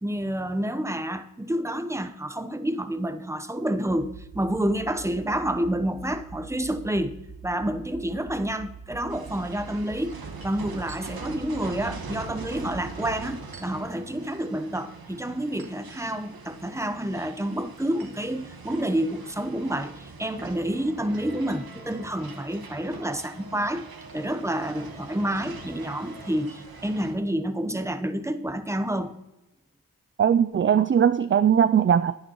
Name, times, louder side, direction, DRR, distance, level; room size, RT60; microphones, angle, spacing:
voice 1, 0.0-10.2 10.4-23.8 24.1-29.2, right 1 dB, 10° right, 0.8 m, -29 dB
sound 1, 3.9-13.4, right 6 dB, 60° right, 0.8 m, -44 dB
sound 2, 9.1-27.1, right 4 dB, 80° right, 1.3 m, -43 dB
voice 2, 30.2-32.1, right 8 dB, 35° right, 0.4 m, -20 dB
11.0 x 9.6 x 3.0 m
cardioid pair, 45°, 36 cm